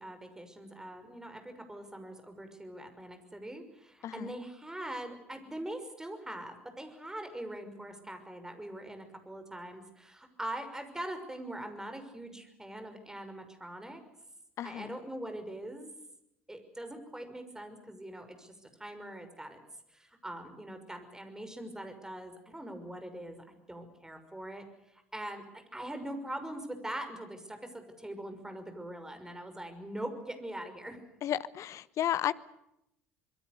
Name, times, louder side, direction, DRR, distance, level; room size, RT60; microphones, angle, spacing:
voice 1, 0.0-14.0 14.6-15.9 16.5-19.6 19.9-24.7 24.9-31.0, right 1 dB, 10° right, 7 dB, 6.0 m, -42 dB
voice 2, 4.0-4.3 14.6-15.0 31.2-32.3, left 11 dB, 45° left, 17 dB, 1.0 m, -33 dB
26.0 x 22.0 x 6.8 m, 0.80 s
figure-of-eight pair, 65°, 7 cm